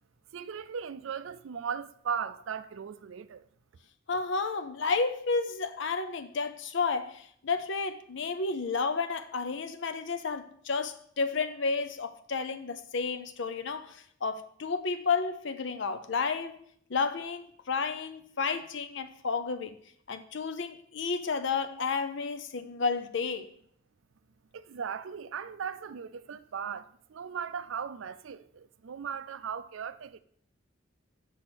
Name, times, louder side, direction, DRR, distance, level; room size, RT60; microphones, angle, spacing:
voice 1, 0.3-3.4 24.5-30.2, right 7 dB, 70° right, 0.4 m, -37 dB
voice 2, 4.1-16.6 16.9-19.8 20.1-23.5, left 4 dB, 60° left, 0.6 m, -31 dB
6.0 x 4.3 x 6.2 m
head